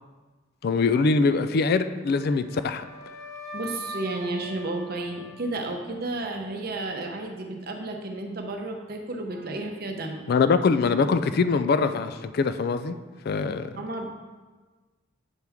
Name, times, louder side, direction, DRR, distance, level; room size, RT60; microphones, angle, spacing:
voice 1, 0.6-2.9 10.3-13.0 13.3-13.7, left 4 dB, 50° left, 10 dB, 0.3 m, -23 dB
Wind instrument woodwind instrument, 2.0-6.2, equal, 15° left, 0.9 m, -42 dB
voice 2, 3.5-10.2 13.8-14.1, right 2 dB, 50° right, 3 dB, 0.8 m, -32 dB
8.1 x 5.9 x 3.5 m, 1.3 s
head